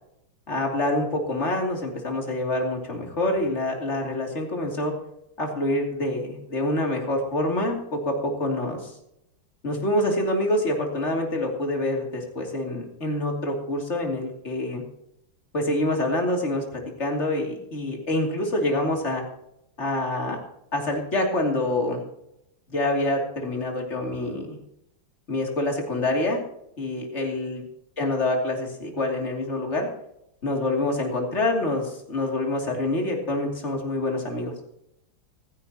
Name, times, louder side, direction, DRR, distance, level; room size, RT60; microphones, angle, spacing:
voice 1, 0.5-4.9 5.4-8.9 9.6-14.8 15.5-19.2 19.8-20.4 20.7-22.0 22.7-24.6 25.3-26.4 26.8-27.6 28.0-29.9 30.4-34.5, left 1 dB, 30° left, 1 dB, 3.1 m, -26 dB
15.5 x 15.5 x 2.9 m, 0.80 s
omnidirectional pair, 2.3 m